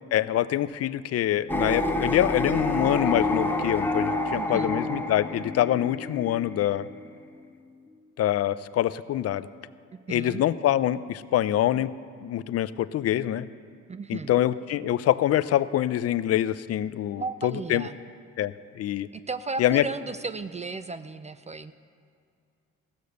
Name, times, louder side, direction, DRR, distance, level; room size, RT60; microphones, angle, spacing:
voice 1, 0.1-6.9 8.2-9.5 10.1-11.9 12.2-13.5 14.1-17.9 18.4-19.1 19.6-19.9, left 12 dB, 55° left, 15 dB, 0.5 m, -25 dB
sound 1, 1.5-7.8, left 2 dB, 5° left, 0.8 m, -29 dB
voice 2, 4.4-4.7 10.1-10.4 13.9-14.3 17.2-17.9 19.1-21.7, right 4 dB, 25° right, 12 dB, 0.4 m, -35 dB
16.0 x 6.5 x 6.8 m, 2.3 s
cardioid pair, 90°, 30 cm